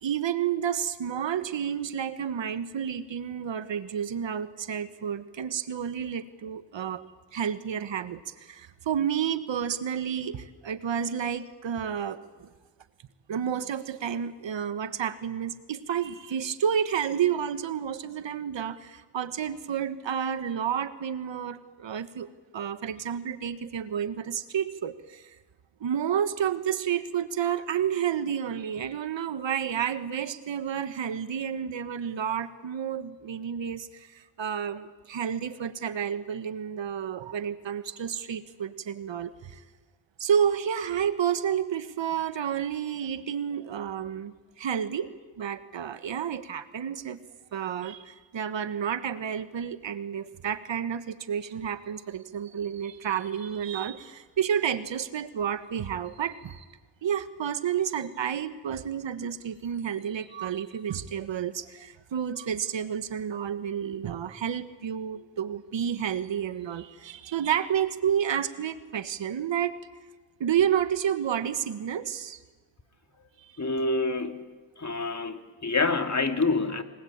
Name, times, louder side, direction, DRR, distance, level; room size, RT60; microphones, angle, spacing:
voice 1, 0.0-7.0 7.3-12.5 13.3-25.4 25.8-39.6 40.2-47.2 47.5-56.6 57.0-69.7 70.4-72.4 73.4-73.5, right 8 dB, 70° right, 12 dB, 1.5 m, -30 dB
voice 2, 73.6-74.5 74.8-76.8, left 3 dB, 35° left, 7 dB, 2.7 m, -27 dB
27.5 x 21.0 x 8.8 m, 1.3 s
cardioid pair, 50°, 46 cm